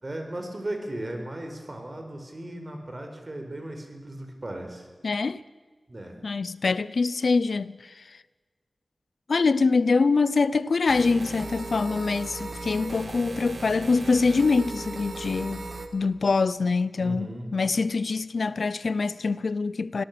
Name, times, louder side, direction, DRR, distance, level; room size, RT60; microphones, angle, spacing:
voice 1, 0.0-4.9 5.9-6.2 17.0-17.5, right 1 dB, 40° right, 4.6 m, -36 dB
voice 2, 5.0-5.4 6.2-8.0 9.3-20.0, left 4 dB, 80° left, 0.6 m, -24 dB
sound 1, 10.9-15.9, right 3 dB, 75° right, 2.1 m, -37 dB
24.5 x 17.5 x 6.9 m
wide cardioid pair, 85°, 0 cm